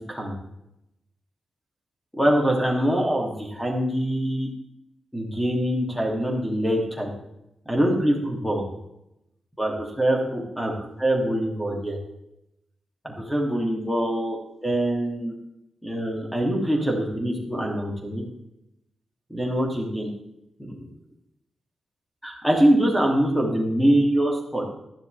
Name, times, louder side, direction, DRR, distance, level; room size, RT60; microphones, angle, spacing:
voice 1, 2.1-4.5 5.1-7.1 7.7-8.6 9.6-12.0 13.0-15.3 15.8-18.2 19.3-20.1 22.2-24.6, right 1 dB, ahead, -1 dB, 2.7 m, -24 dB
13.5 x 11.5 x 3.4 m, 0.84 s
wide cardioid pair, 175°, 0 cm